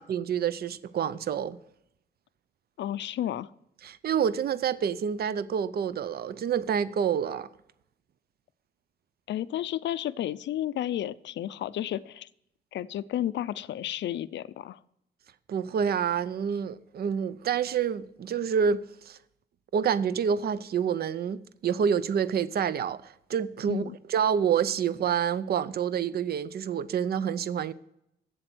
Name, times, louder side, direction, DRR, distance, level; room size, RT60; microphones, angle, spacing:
voice 1, 0.0-1.6 3.8-7.5 15.5-19.2 19.7-23.8 24.1-27.7, right 7 dB, 60° right, 0.5 m, -28 dB
voice 2, 2.8-3.5 9.3-12.3 12.7-14.8 23.7-24.0, left 12 dB, 80° left, 0.4 m, -32 dB
8.1 x 7.5 x 6.0 m
wide cardioid pair, 130°, 18 cm